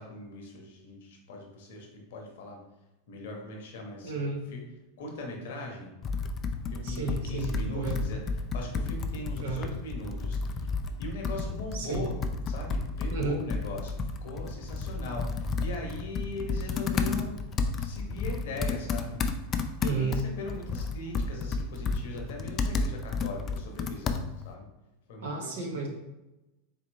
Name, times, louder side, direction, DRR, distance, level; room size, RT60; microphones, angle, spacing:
voice 1, 0.0-2.6 3.1-4.6 5.0-5.9 6.7-10.7 11.0-12.1 12.5-17.4 17.8-19.2 19.8-24.7 25.1-25.8, left 1 dB, 60° left, 1 dB, 1.0 m, -40 dB
voice 2, 4.0-4.4 6.8-8.0 9.4-9.6 11.7-12.0 13.1-13.4 19.8-20.2 25.2-25.9, right 4 dB, 65° right, 1 dB, 1.0 m, -32 dB
Computer keyboard, 6.0-24.5, left 4 dB, 30° left, 0.4 m, -32 dB
4.3 x 2.9 x 3.1 m, 0.97 s
figure-of-eight pair, 90°, 0 cm